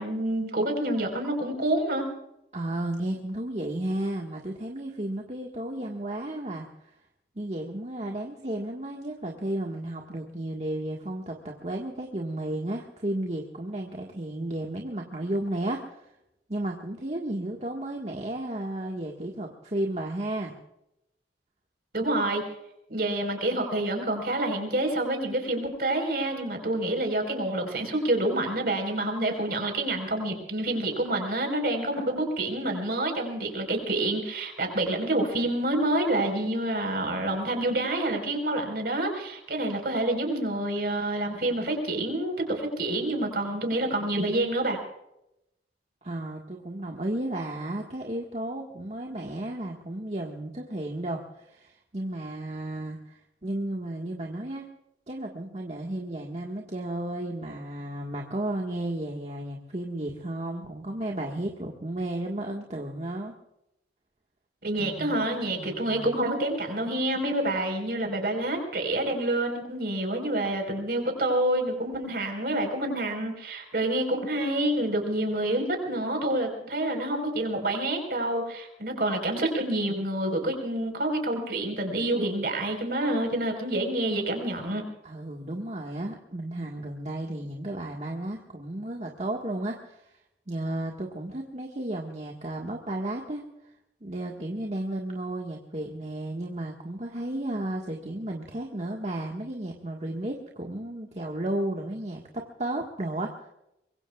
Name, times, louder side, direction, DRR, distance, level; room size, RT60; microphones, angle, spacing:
voice 1, 0.0-2.0 21.9-22.4 22.9-44.8 64.6-84.8, right 1 dB, 55° right, 4 dB, 4.6 m, -28 dB
voice 2, 2.5-6.7 7.3-16.0 16.5-20.5 46.0-54.7 55.1-63.3 64.8-65.1 65.6-66.1 85.0-90.1 90.5-93.4 94.0-103.5, right 1 dB, 40° right, 0 dB, 1.7 m, -33 dB
24.5 x 22.5 x 2.4 m, 0.85 s
head